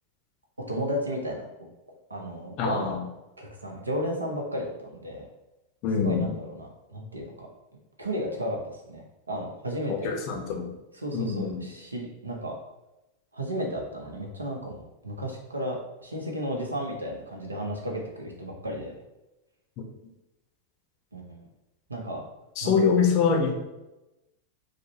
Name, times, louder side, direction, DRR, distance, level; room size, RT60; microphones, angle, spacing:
voice 1, 0.7-1.5 2.1-3.0 3.4-5.3 6.0-7.5 8.0-10.2 10.9-12.6 13.3-18.9 21.1-21.5 21.9-22.2 22.6-22.8, equal, 80° right, 1 dB, 0.7 m, -33 dB
voice 2, 2.6-2.9 5.8-6.3 9.9-10.7 11.1-11.6 22.6-23.5, left 6 dB, 40° left, 2 dB, 0.6 m, -24 dB
4.9 x 2.1 x 2.7 m, 0.97 s
figure-of-eight pair, 90°, 0 cm